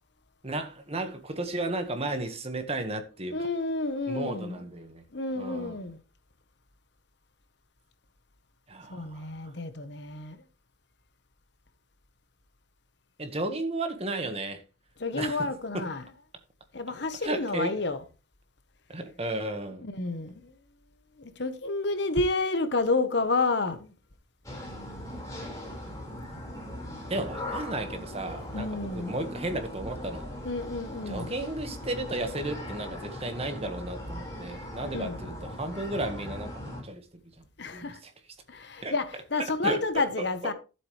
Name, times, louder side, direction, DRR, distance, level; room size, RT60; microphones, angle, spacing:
voice 1, 0.4-3.3 4.1-5.0 5.3-5.7 8.7-9.3 13.2-14.6 15.1-15.5 15.7-15.9 17.2-17.7 18.9-19.8 27.1-30.3 31.1-37.0 37.7-38.1 38.8-38.9 39.6-39.8 40.2-40.5, right 2 dB, 30° right, 1.5 m, -34 dB
voice 2, 3.3-4.7 5.1-6.0 8.9-10.4 15.0-16.1 16.7-18.0 19.8-20.5 21.2-23.9 28.5-29.2 30.4-31.4 34.8-35.2 37.6-38.0 38.5-40.5, left 3 dB, 65° left, 1.2 m, -30 dB
sound 1, 24.4-36.8, left 1 dB, 20° left, 4.8 m, -39 dB
12.5 x 7.7 x 3.3 m
head